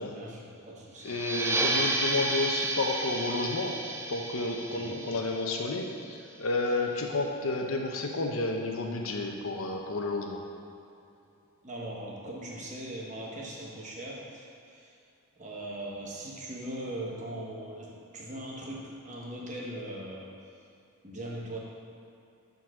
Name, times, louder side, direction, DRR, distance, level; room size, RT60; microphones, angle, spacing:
voice 1, 0.1-1.1 4.7-5.0 11.6-14.9 15.4-20.3 21.0-21.6, right 1 dB, 35° right, -3 dB, 1.1 m, -40 dB
voice 2, 1.0-3.8 4.1-10.4, left 2 dB, 80° left, 2 dB, 0.8 m, -31 dB
sound 1, 1.0-6.3, right 2 dB, 10° right, 0.3 m, -32 dB
7.2 x 4.0 x 6.1 m, 2.7 s
head